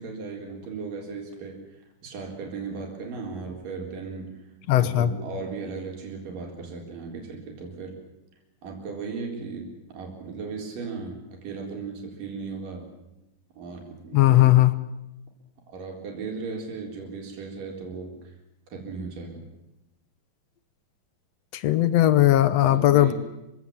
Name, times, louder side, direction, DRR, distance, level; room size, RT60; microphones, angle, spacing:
voice 1, 0.0-1.6 2.0-4.3 4.7-8.0 8.6-9.7 9.9-12.9 13.6-14.6 15.7-18.3 18.7-19.4 22.6-23.1, right 4 dB, 60° right, 1 dB, 5.7 m, -36 dB
voice 2, 4.7-5.1 14.1-14.7 21.5-23.1, left 14 dB, 80° left, 14 dB, 1.5 m, -18 dB
26.5 x 16.5 x 8.8 m, 0.94 s
omnidirectional pair, 4.4 m